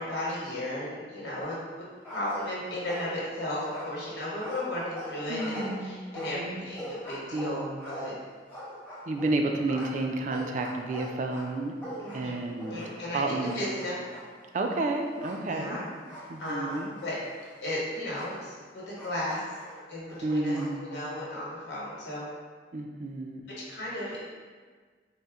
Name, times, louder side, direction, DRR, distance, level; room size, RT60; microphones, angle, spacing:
voice 1, 0.0-8.1 12.0-12.4 12.6-14.0 15.5-15.8 16.2-17.2 17.6-19.4 19.9-22.3 23.7-24.2, left 1 dB, 90° left, -6 dB, 1.2 m, -35 dB
sound 1, 1.4-1.8 2.0-3.3 3.6-9.4 9.7-13.1 13.4-14.3 15.2-15.4 16.1-18.4 19.0-20.8, equal, 10° left, 0.9 m, -42 dB
voice 2, 5.3-6.6 7.3-7.8 9.1-11.7 12.1-12.8 13.1-13.6 14.5-15.8 16.3-16.9 20.2-20.9 22.7-23.4, right 2 dB, 45° right, 3 dB, 0.3 m, -31 dB
4.1 x 2.1 x 3.5 m, 1.5 s
head